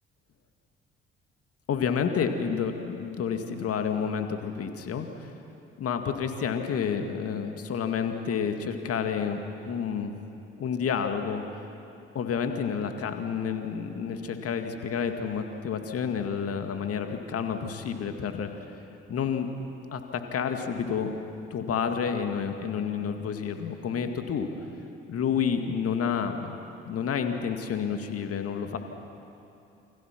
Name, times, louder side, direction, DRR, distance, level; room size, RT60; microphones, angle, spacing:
voice 1, 1.7-5.3 5.8-9.4 9.7-10.2 10.6-11.4 12.1-18.5 19.1-19.5 19.9-21.1 21.5-24.5 25.1-26.6 26.8-28.8, left 7 dB, 50° left, 6 dB, 2.3 m, -29 dB
29.0 x 26.5 x 6.1 m, 2.7 s
figure-of-eight pair, 45°, 30 cm